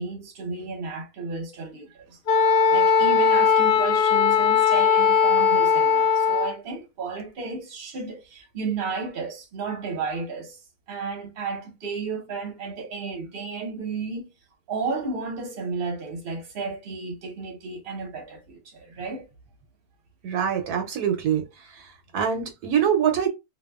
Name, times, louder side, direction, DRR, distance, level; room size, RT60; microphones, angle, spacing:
voice 1, 0.0-2.2 2.7-10.6 10.9-14.3 14.7-19.3, right 4 dB, 45° right, 0.9 m, -33 dB
Wind instrument woodwind instrument, 2.3-6.5, left 6 dB, 75° left, 1.1 m, -19 dB
voice 2, 20.2-21.4 21.8-23.3, right 8 dB, 75° right, 1.1 m, -24 dB
2.8 x 2.2 x 2.3 m
omnidirectional pair, 1.8 m